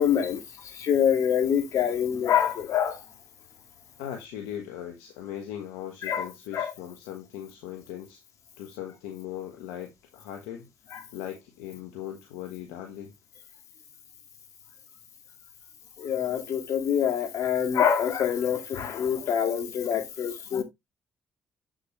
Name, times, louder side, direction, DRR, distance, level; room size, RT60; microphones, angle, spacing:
voice 1, 0.0-3.0 6.0-6.3 6.5-6.7 10.9-11.0 16.0-20.6, left 8 dB, 70° left, 2.0 m, -25 dB
voice 2, 4.0-8.2 8.6-10.7 11.1-13.1, left 11 dB, 85° left, 1.2 m, -39 dB
7.9 x 6.3 x 3.1 m
hypercardioid pair, 50°, 6 cm